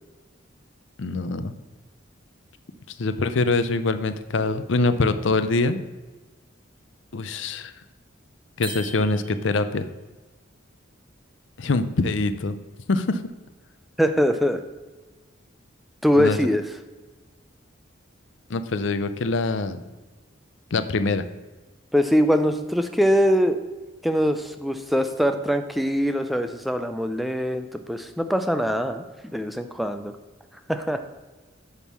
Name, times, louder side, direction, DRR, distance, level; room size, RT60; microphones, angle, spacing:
voice 1, 1.0-1.5 3.0-5.8 7.1-7.7 8.6-9.9 11.6-12.6 12.9-13.2 16.2-16.4 18.5-19.8 20.7-21.2, left 3 dB, 70° left, 11 dB, 0.5 m, -24 dB
sound 1, 8.6-9.8, right 2 dB, 25° right, 1.1 m, -39 dB
voice 2, 14.0-14.6 16.0-16.6 21.9-23.6 24.0-30.1 30.7-31.0, equal, ahead, 8 dB, 0.4 m, -22 dB
10.5 x 3.6 x 7.2 m, 1.2 s
head